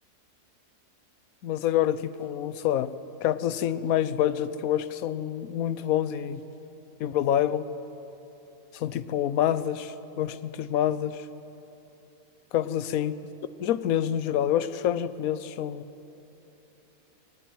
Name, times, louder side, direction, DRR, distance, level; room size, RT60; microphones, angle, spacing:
voice 1, 1.4-2.9 3.2-6.4 7.0-7.7 8.7-11.3 12.5-13.1 13.6-15.8, left 11 dB, 65° left, 15 dB, 1.1 m, -27 dB
20.0 x 18.5 x 9.3 m, 3.0 s
omnidirectional pair, 1.7 m